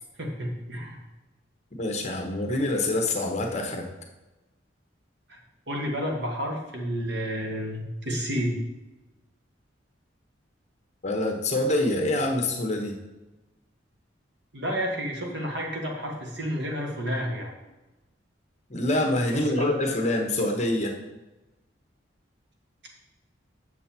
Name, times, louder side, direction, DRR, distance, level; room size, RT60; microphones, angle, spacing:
voice 1, 0.2-1.0 5.3-5.4 5.7-8.6 14.5-17.5 19.3-19.6, equal, 60° right, 0 dB, 1.6 m, -30 dB
voice 2, 1.8-3.9 11.0-13.0 18.7-21.0, left 1 dB, 35° left, 3 dB, 1.1 m, -26 dB
7.4 x 6.7 x 4.4 m, 1.1 s
head